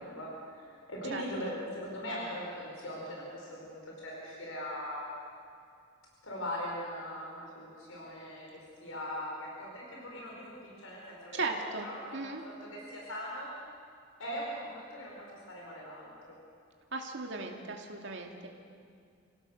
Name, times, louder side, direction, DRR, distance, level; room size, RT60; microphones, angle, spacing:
voice 1, 0.0-5.1 6.2-10.5 10.8-11.5 11.8-13.5 14.2-16.3, equal, 75° left, -3 dB, 5.0 m, -40 dB
voice 2, 1.1-1.5 11.3-12.4 16.9-18.5, right 3 dB, 60° right, 2 dB, 2.4 m, -37 dB
26.5 x 17.0 x 6.6 m, 2.4 s
head